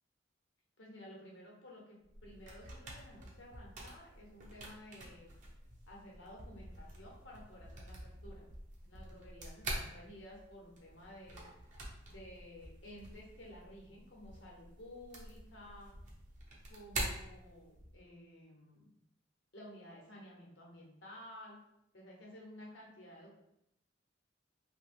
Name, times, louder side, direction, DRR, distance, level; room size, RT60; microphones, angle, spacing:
voice 1, 0.8-5.3 5.9-8.5 8.8-11.5 12.1-15.9 16.7-18.9 19.5-21.6 21.9-23.3, left 1 dB, 65° left, -3 dB, 0.9 m, -53 dB
sound 1, 2.0-18.0, right 1 dB, 40° right, 0.6 m, -47 dB
2.9 x 2.2 x 3.3 m, 0.80 s
head